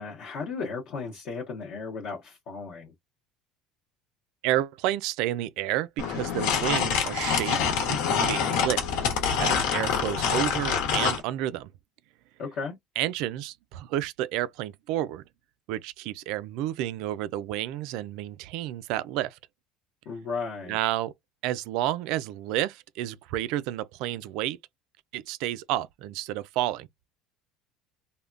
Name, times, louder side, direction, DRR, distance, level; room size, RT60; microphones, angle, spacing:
voice 1, 0.0-2.9 12.4-12.7 20.1-20.8, left 4 dB, 45° left, 0.8 m, -35 dB
voice 2, 4.4-9.0 9.4-11.7 13.0-15.2 15.7-19.4 20.7-21.1 21.4-24.6 25.1-26.9, right 13 dB, 55° right, 0.3 m, -30 dB
sound 1, 6.0-11.2, left 7 dB, 75° left, 1.0 m, -26 dB
3.4 x 2.2 x 2.4 m
cardioid pair, 180°, 0 cm